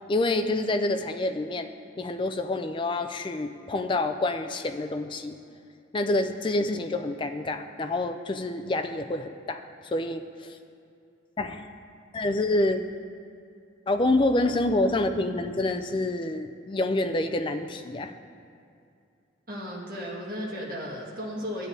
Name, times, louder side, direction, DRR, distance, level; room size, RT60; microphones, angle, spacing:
voice 1, 0.1-1.7 2.0-5.4 5.9-10.6 11.4-11.7 12.1-12.8 13.9-18.1, left 2 dB, 25° left, 7 dB, 0.3 m, -27 dB
voice 2, 19.5-21.7, equal, 45° right, -4 dB, 1.6 m, -35 dB
12.5 x 8.7 x 2.6 m, 2.5 s
head